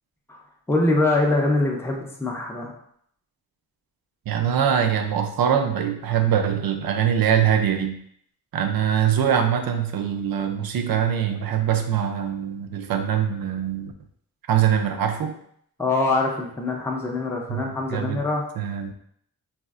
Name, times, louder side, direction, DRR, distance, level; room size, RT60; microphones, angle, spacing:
voice 1, 0.7-2.7 15.8-18.4, left 2 dB, 5° left, -1 dB, 0.5 m, -23 dB
voice 2, 4.3-8.0 8.5-13.9 14.5-15.3 17.5-18.2 18.6-18.9, right 9 dB, 70° right, 6 dB, 0.5 m, -23 dB
4.2 x 2.4 x 2.4 m, 0.67 s
wide cardioid pair, 140°, 37 cm